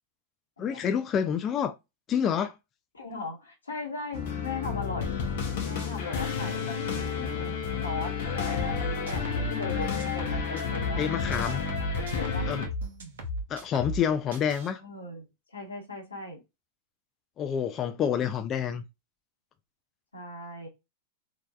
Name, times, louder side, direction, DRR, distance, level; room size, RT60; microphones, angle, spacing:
voice 1, 0.6-1.7 2.1-2.5 11.0-11.6 12.5-12.7 13.5-14.8 17.4-18.8, left 8 dB, 35° left, 0.3 m, -28 dB
voice 2, 2.9-5.2 5.6-7.6 7.8-11.6 11.9-12.5 14.8-16.4 18.0-18.3 20.1-20.7, left 2 dB, 90° left, 1.1 m, -39 dB
sound 1, 4.1-12.7, left 6 dB, 60° left, 0.7 m, -31 dB
sound 2, 8.7-11.0 11.3-14.0 14.3-14.7, left 1 dB, 75° right, 0.9 m, -35 dB
3.1 x 2.3 x 2.3 m
hypercardioid pair, 100°, 0 cm